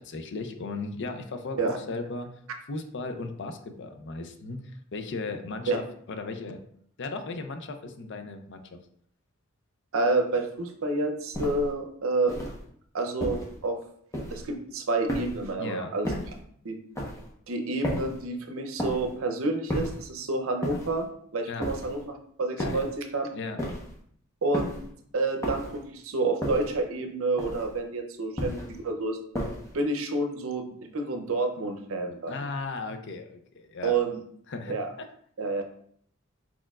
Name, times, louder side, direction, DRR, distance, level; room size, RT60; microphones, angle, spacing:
voice 1, 0.0-2.3 2.7-4.6 4.9-5.8 6.1-6.6 7.0-8.6 15.6-15.9 21.5-21.7 22.6-22.8 23.3-23.6 32.3-34.0 34.5-35.1, left 3 dB, 60° left, 7 dB, 0.5 m, -36 dB
voice 2, 9.9-12.3 12.9-13.8 14.3-16.1 16.6-16.8 17.5-21.1 21.3-23.3 24.4-24.7 25.1-29.2 29.7-32.3 33.8-34.2 34.7-34.9 35.4-35.6, right 3 dB, 75° right, 5 dB, 0.7 m, -29 dB
sound 1, 11.3-11.7 12.3-12.6 13.2-13.6 14.1-14.5 15.1-15.5 16.0-16.4 16.9-17.3 17.8-18.2 18.8-19.2 19.7-20.1 20.6-21.0 21.6-22.0 22.6-23.0 23.6-24.0 24.5-24.9 25.4-25.8 26.4-26.8 27.4-27.8 28.4-28.8 29.3-29.8, equal, 15° left, 0.9 m, -33 dB
4.4 x 4.3 x 2.4 m, 0.65 s
head